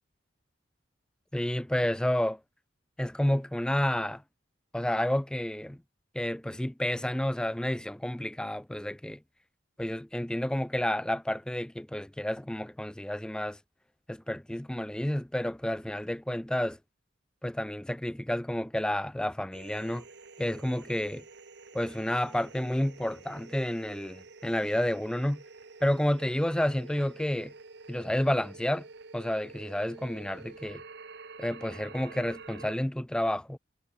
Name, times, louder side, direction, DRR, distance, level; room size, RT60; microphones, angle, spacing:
voice 1, 1.3-2.4 3.0-4.2 4.7-5.8 6.1-9.2 9.8-13.6 14.1-16.8 17.4-20.0 20.4-21.2 21.7-25.4 25.8-27.5 27.9-28.9 29.1-30.8 31.4-33.6, left 1 dB, 5° left, 0.3 m, -30 dB
sound 1, 19.5-32.7, right 3 dB, 60° right, 1.3 m, -49 dB
head